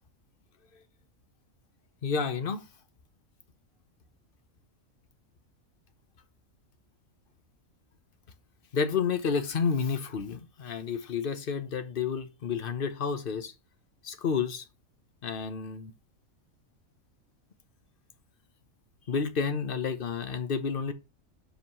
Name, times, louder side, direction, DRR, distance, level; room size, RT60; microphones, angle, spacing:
voice 1, 2.0-2.6 8.7-13.5 14.0-14.6 15.2-15.9 19.1-20.9, left 5 dB, 45° left, 1.1 m, -30 dB
5.8 x 5.1 x 5.5 m
omnidirectional pair, 1.4 m